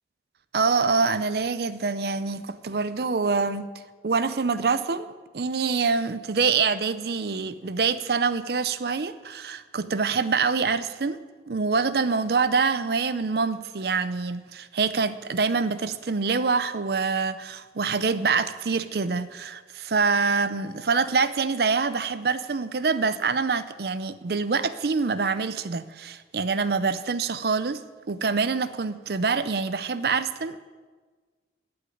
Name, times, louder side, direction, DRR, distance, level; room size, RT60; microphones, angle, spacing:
voice 1, 0.5-3.7 4.0-5.1 5.3-11.2 11.5-27.8 28.1-30.6, right 4 dB, 60° right, 0.6 m, -25 dB
14.0 x 6.2 x 9.4 m
head